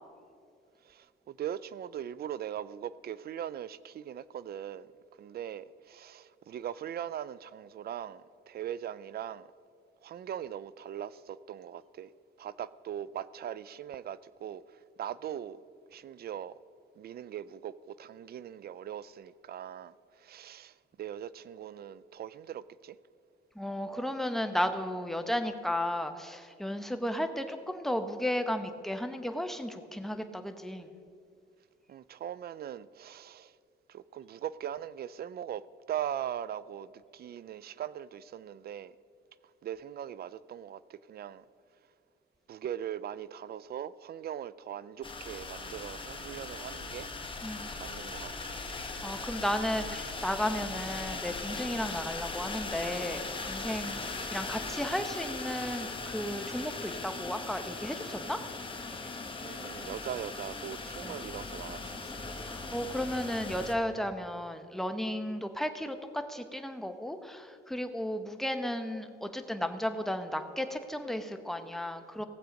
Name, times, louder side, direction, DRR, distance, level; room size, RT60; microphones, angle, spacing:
voice 1, 0.8-4.9 5.2-9.5 10.0-12.1 12.4-15.6 15.9-16.6 17.0-23.0 31.9-33.6 33.9-39.0 39.6-41.4 42.5-47.1 47.4-47.5 47.8-48.6 59.4-62.2, right 10 dB, 50° right, 0.4 m, -40 dB
voice 2, 23.5-30.9 47.4-47.7 48.7-58.4 61.0-61.2 62.4-72.2, left 1 dB, ahead, 0.9 m, -34 dB
sound 1, 45.0-63.7, left 3 dB, 25° left, 1.3 m, -39 dB
17.0 x 7.5 x 5.2 m
cardioid pair, 90°, 20 cm